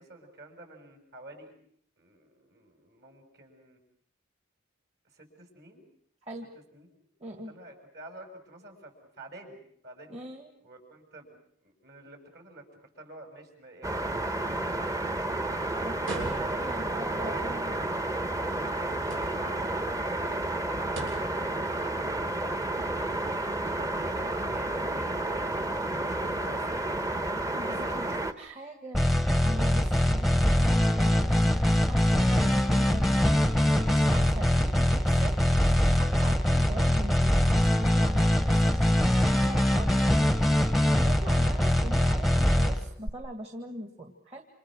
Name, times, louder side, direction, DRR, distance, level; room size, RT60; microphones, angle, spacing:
voice 1, 0.0-1.5 2.0-3.8 5.1-5.8 6.7-6.9 7.5-10.1 10.6-15.3 15.8-16.1 16.9-23.2 23.6-25.5 25.9-26.8 27.5-28.2 39.7-40.1, right 1 dB, 55° right, 4 dB, 7.0 m, -49 dB
voice 2, 7.2-7.5 10.1-10.5 15.8-17.7 27.3-29.0 29.4-31.6 31.9-33.4 33.7-35.4 35.9-38.9 39.3-39.9 40.9-44.4, right 1 dB, 35° right, 5 dB, 2.1 m, -41 dB
sound 1, 13.8-28.3, right 2 dB, 15° right, 1.1 m, -31 dB
sound 2, 16.0-16.8 19.0-19.6 20.9-21.4, right 2 dB, 80° right, 7.1 m, -39 dB
sound 3, 28.9-43.1, left 1 dB, ahead, 1.0 m, -23 dB
28.5 x 27.5 x 6.4 m, 0.66 s
head